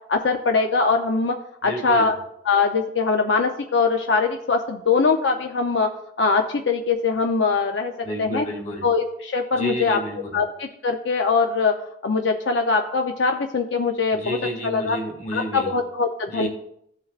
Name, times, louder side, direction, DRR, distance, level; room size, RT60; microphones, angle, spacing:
voice 1, 0.1-1.3 1.6-2.1 2.5-5.9 6.2-7.9 8.2-8.5 8.8-10.0 10.3-11.7 12.0-14.4 14.6-15.0 15.3-16.5, left 4 dB, 85° left, 4 dB, 0.6 m, -22 dB
voice 2, 1.6-2.0 8.0-8.9 9.5-10.4 14.1-15.7 16.3-16.5, equal, 40° left, -2 dB, 2.2 m, -30 dB
14.5 x 5.6 x 2.4 m, 0.73 s
head